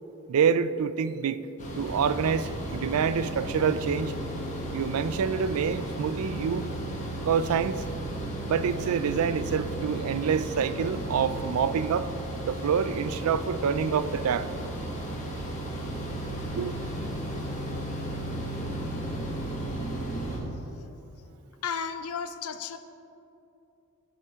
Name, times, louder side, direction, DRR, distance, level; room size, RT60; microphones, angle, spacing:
voice 1, 0.3-1.4 1.8-4.1 4.7-6.6 7.3-7.8 8.5-12.1 12.5-14.5 16.6-16.7, right 6 dB, 80° right, 14 dB, 0.4 m, -27 dB
sound 1, 1.6-20.4, right 1 dB, 35° left, 1.5 m, -34 dB
voice 2, 21.6-22.8, left 6 dB, 85° left, 10 dB, 0.5 m, -33 dB
14.5 x 5.7 x 3.6 m, 2.8 s
head